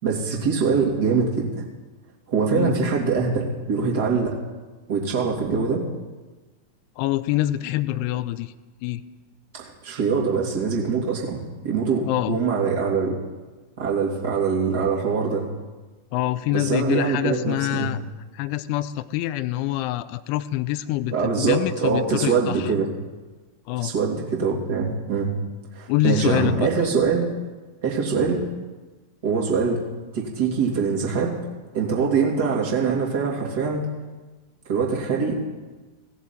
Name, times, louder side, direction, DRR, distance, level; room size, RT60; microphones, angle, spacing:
voice 1, 0.0-1.5 2.3-4.4 4.9-5.8 9.5-13.1 13.8-15.4 16.5-17.9 21.1-22.9 23.8-25.3 25.7-27.2 27.8-28.4 29.2-29.8 30.1-31.4 31.7-33.9 34.7-35.4, right 5 dB, 50° right, -2 dB, 2.8 m, -23 dB
voice 2, 7.0-8.5 8.8-9.0 12.0-12.4 16.1-18.0 18.3-22.7 23.7-23.9 25.9-26.7, left 15 dB, 45° left, 14 dB, 0.5 m, -25 dB
17.0 x 7.0 x 4.4 m, 1.2 s
figure-of-eight pair, 90°, 0 cm